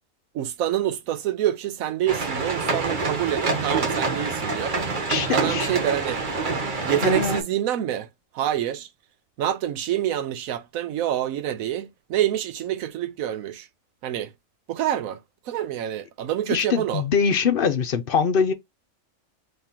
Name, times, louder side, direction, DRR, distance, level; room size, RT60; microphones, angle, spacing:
voice 1, 0.3-4.9 5.3-6.2 6.8-8.1 8.3-8.9 9.4-13.7 14.0-14.3 14.7-17.0, right 11 dB, 85° right, 1.1 m, -27 dB
sound 1, 2.1-7.4, right 4 dB, 40° right, 1.1 m, -26 dB
voice 2, 5.1-5.7 7.0-7.4 16.5-18.5, left 6 dB, 50° left, 0.7 m, -23 dB
3.6 x 3.3 x 4.3 m
omnidirectional pair, 1.4 m